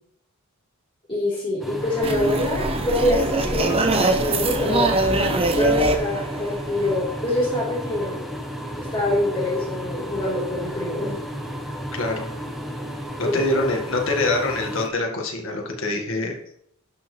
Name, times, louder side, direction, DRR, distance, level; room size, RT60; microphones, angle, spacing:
voice 1, 1.1-4.9 5.6-8.3 8.8-11.2 13.2-13.6, left 1 dB, 25° left, -10 dB, 3.9 m, -25 dB
sound 1, 1.6-14.9, equal, ahead, 1.0 m, -33 dB
sound 2, 2.0-7.2, right 2 dB, 25° right, 0.8 m, -23 dB
voice 2, 11.9-12.3 13.2-16.5, left 2 dB, 60° left, 1 dB, 1.9 m, -25 dB
11.5 x 6.4 x 3.4 m, 0.70 s
head